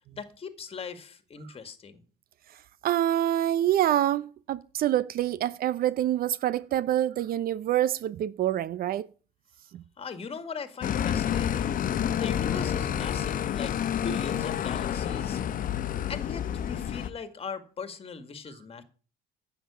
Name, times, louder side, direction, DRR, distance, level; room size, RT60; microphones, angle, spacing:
voice 1, 0.0-2.0 10.0-11.7 12.1-13.8 14.0-15.4 16.1-18.8, left 5 dB, 35° left, 2.0 m, -39 dB
voice 2, 2.8-9.1 9.7-9.8, right 12 dB, 60° right, 0.6 m, -26 dB
sound 1, 10.8-17.1, left 9 dB, 55° left, 1.1 m, -29 dB
10.0 x 8.1 x 8.3 m
cardioid pair, 110°, 17 cm